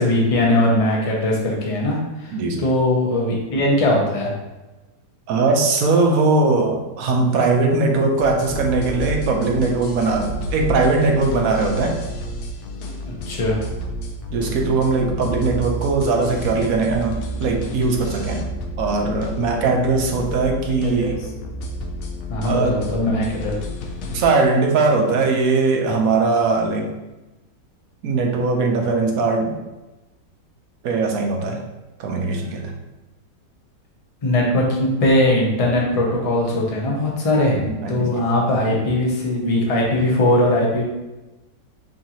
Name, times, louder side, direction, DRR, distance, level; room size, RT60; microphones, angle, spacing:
voice 1, 0.0-4.3 13.1-13.6 19.9-20.0 21.0-21.1 22.3-23.5 34.2-40.8, left 1 dB, 35° left, -2 dB, 0.6 m, -20 dB
voice 2, 2.3-2.6 5.3-12.0 14.3-18.4 18.8-21.2 22.4-22.8 24.1-26.9 28.0-29.6 30.8-31.6 32.0-32.7 37.8-38.2, right 3 dB, 65° right, 1 dB, 1.0 m, -20 dB
sound 1, 8.2-24.3, equal, 75° left, 1.0 m, -31 dB
6.3 x 2.6 x 2.9 m, 1.1 s
omnidirectional pair, 1.8 m